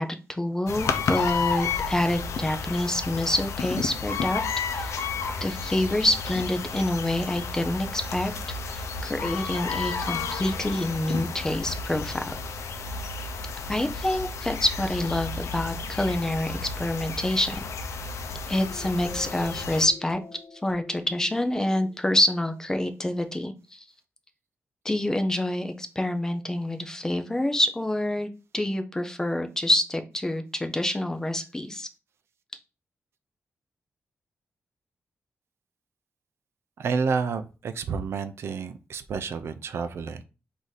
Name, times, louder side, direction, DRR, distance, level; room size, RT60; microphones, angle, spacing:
voice 1, 0.0-4.4 4.7-5.1 5.4-8.3 8.7-12.3 13.7-17.6 18.5-20.2 20.5-23.8 24.8-31.9, left 1 dB, 10° left, 7 dB, 0.5 m, -27 dB
sound 1, 0.7-19.9, left 5 dB, 90° left, 0.6 m, -32 dB
sound 2, 18.6-23.0, left 5 dB, 60° left, 1.1 m, -45 dB
voice 2, 36.8-40.2, right 5 dB, 65° right, 10 dB, 0.4 m, -30 dB
4.0 x 2.7 x 4.7 m, 0.31 s
wide cardioid pair, 170°, 5 cm